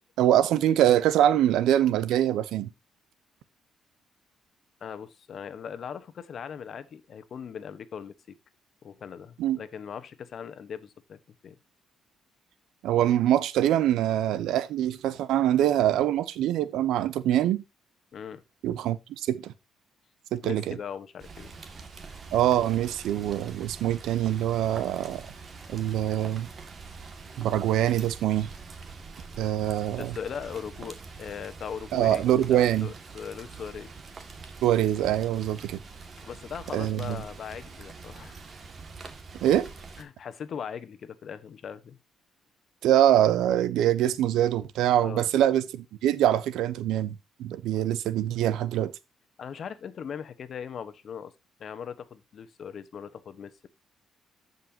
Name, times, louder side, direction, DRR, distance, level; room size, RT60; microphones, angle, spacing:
voice 1, 0.2-2.7 9.4-9.6 12.8-17.6 18.6-19.5 20.3-20.8 22.3-25.2 25.7-26.5 27.4-28.5 29.4-30.1 31.9-32.9 34.6-35.8 36.7-37.2 39.4-39.7 42.8-48.9, right 11 dB, 85° right, 0.7 m, -24 dB
voice 2, 4.8-8.1 8.8-11.6 18.1-18.4 20.4-21.6 30.0-32.2 32.5-33.9 36.2-38.4 40.0-42.0 45.0-45.2 49.4-51.3 51.6-53.7, left 7 dB, 55° left, 1.1 m, -39 dB
Rain, 21.2-40.0, right 4 dB, 45° right, 1.9 m, -45 dB
15.0 x 5.5 x 2.8 m
cardioid pair, 90°, 0 cm